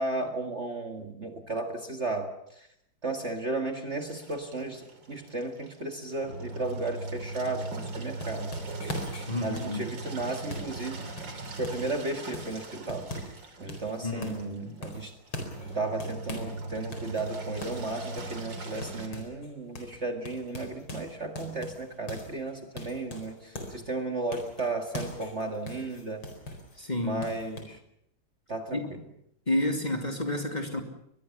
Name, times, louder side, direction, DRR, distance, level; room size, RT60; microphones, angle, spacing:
voice 1, 0.0-2.7 3.0-8.5 9.4-11.1 11.6-13.3 13.6-15.1 15.7-26.3 27.0-27.8 28.5-29.0, right 2 dB, 35° right, 5 dB, 2.1 m, -34 dB
Engine, 3.9-19.1, right 2 dB, 60° right, 3.5 m, -40 dB
sound 1, 7.7-11.9 12.3-13.4 13.7-14.5 14.8-16.6 16.9-19.5 19.7-20.0 20.3-23.8 24.3-26.8 27.2-27.6, left 1 dB, 80° left, 5.2 m, -41 dB
voice 2, 9.3-9.9 14.0-14.7 26.8-27.2 28.7-28.8 29.5-30.8, left 1 dB, 20° left, 4 dB, 2.6 m, -30 dB
24.0 x 21.0 x 7.1 m, 0.76 s
omnidirectional pair, 2.2 m